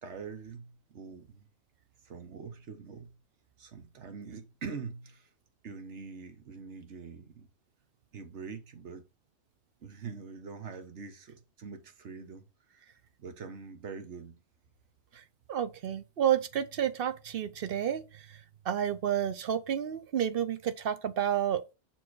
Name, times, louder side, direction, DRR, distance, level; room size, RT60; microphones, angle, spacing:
voice 1, 0.0-1.5 2.0-3.2 3.6-5.3 5.6-7.5 8.1-9.0 9.8-12.5 13.2-14.4, right 5 dB, 85° right, 1.4 m, -44 dB
voice 2, 15.5-18.4 18.6-21.6, right 9 dB, 60° right, 0.8 m, -30 dB
6.1 x 4.5 x 4.6 m
omnidirectional pair, 1.1 m